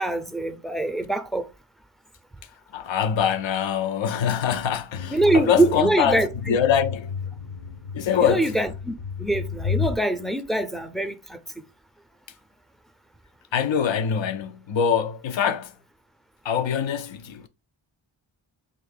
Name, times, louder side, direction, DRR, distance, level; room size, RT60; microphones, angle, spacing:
voice 1, 0.0-1.5 5.1-6.6 8.2-11.4, right 2 dB, ahead, 0.5 m, -24 dB
voice 2, 2.7-7.1 7.9-8.5 13.5-15.7 16.4-17.5, left 8 dB, 70° left, 0.6 m, -24 dB
sound 1, 4.9-10.0, left 6 dB, 85° left, 1.2 m, -32 dB
3.8 x 2.5 x 4.0 m
cardioid pair, 50°, 48 cm